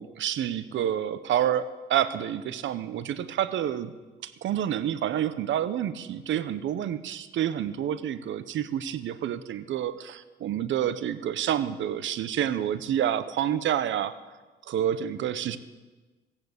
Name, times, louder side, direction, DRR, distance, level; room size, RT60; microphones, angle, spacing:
voice 1, 0.0-3.9 4.2-14.1 14.7-15.6, right 10 dB, 70° right, 14 dB, 0.9 m, -28 dB
15.0 x 9.1 x 8.1 m, 1.3 s
cardioid pair, 90°, 20 cm